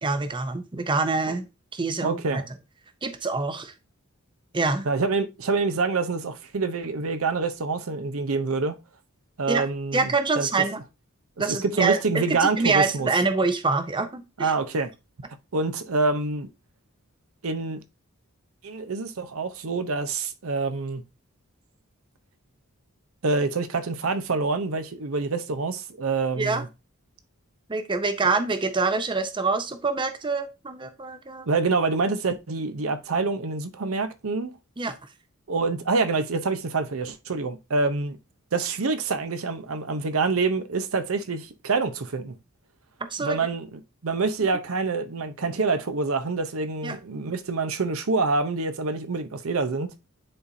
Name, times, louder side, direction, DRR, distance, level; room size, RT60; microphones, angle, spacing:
voice 1, 0.0-2.4 3.0-3.7 4.5-4.8 9.5-9.6 9.9-10.8 11.4-14.5 26.4-26.6 27.7-31.5 34.8-35.0 43.1-43.4 46.8-47.0, right 3 dB, 20° right, 0.6 m, -26 dB
voice 2, 2.0-2.4 4.9-8.8 9.4-10.5 11.5-13.1 14.4-14.9 15.5-16.5 17.4-17.8 18.6-21.0 23.2-26.7 31.5-34.6 35.5-38.2 38.5-42.4 43.2-49.9, right 4 dB, 70° right, 0.7 m, -26 dB
9.9 x 4.1 x 2.7 m
head